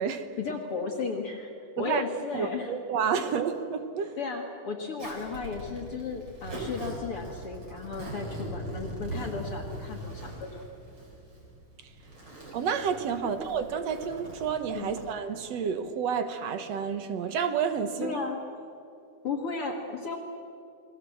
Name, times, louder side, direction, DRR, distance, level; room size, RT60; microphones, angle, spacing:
voice 1, 0.4-1.5 1.8-2.8 4.2-10.6 13.2-13.3 14.7-14.9 18.0-18.4 19.2-20.2, left 4 dB, 50° left, 2.3 m, -34 dB
voice 2, 2.3-4.2 12.5-18.2, right 7 dB, 60° right, 2.2 m, -30 dB
Zipper (clothing), 5.0-15.1, right 1 dB, 35° right, 5.0 m, -41 dB
29.0 x 22.0 x 7.3 m
omnidirectional pair, 3.6 m